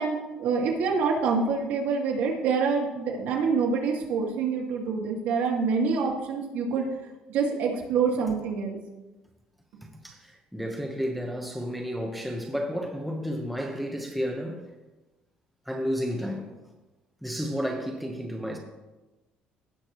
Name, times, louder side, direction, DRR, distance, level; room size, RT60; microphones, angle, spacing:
voice 1, 0.0-6.9 7.3-8.8, right 5 dB, 70° right, -1 dB, 2.0 m, -26 dB
voice 2, 10.0-14.7 15.7-16.5 17.2-18.6, equal, ahead, 0 dB, 0.9 m, -31 dB
16.5 x 6.4 x 3.0 m, 1.1 s
cardioid pair, 175°, 3 cm